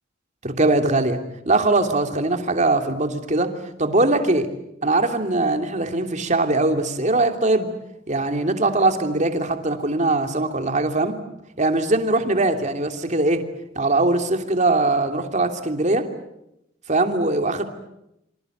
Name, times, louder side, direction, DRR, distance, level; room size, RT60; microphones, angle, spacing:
voice 1, 0.4-1.2 1.4-3.5 3.8-4.5 4.8-7.7 8.1-11.1 11.6-13.4 13.7-16.1 16.9-17.6, right 2 dB, 40° right, 6 dB, 3.0 m, -21 dB
27.5 x 25.5 x 8.0 m, 0.82 s
head